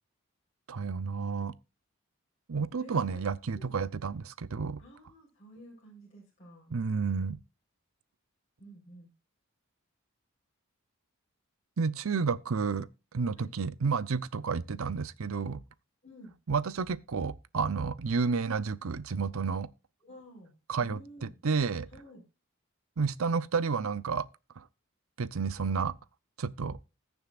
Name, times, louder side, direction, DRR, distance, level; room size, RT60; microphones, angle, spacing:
voice 1, 0.7-1.5 2.5-4.8 6.7-7.4 11.8-12.9 13.1-15.6 16.5-19.7 20.7-21.9 23.0-24.3 24.6-24.7 25.2-25.9 26.4-26.8, right 5 dB, 75° right, 0.6 m, -31 dB
voice 2, 2.8-3.2 3.5-3.8 4.8-6.7 8.6-9.1 13.4-13.5 16.0-16.3 20.0-20.5 20.8-21.3 21.9-22.2, equal, 30° left, 4.1 m, -51 dB
20.5 x 7.0 x 2.4 m
head